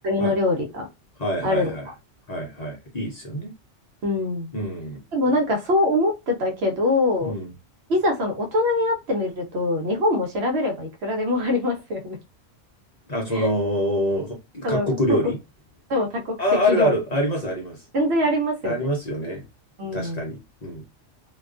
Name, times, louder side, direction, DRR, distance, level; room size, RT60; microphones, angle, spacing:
voice 1, 0.0-0.9 1.4-1.7 4.0-4.5 5.1-7.3 7.9-12.2 13.3-13.5 14.6-15.3 15.9-16.4 16.7-16.9 17.9-18.9 19.8-20.2, left 2 dB, 65° right, 0.8 m, -23 dB
voice 2, 1.2-1.8 2.3-3.5 4.5-5.0 7.2-7.5 13.1-15.4 16.4-17.8 18.6-19.4 19.9-20.8, equal, 45° left, 0.6 m, -25 dB
2.4 x 2.2 x 2.3 m
omnidirectional pair, 1.3 m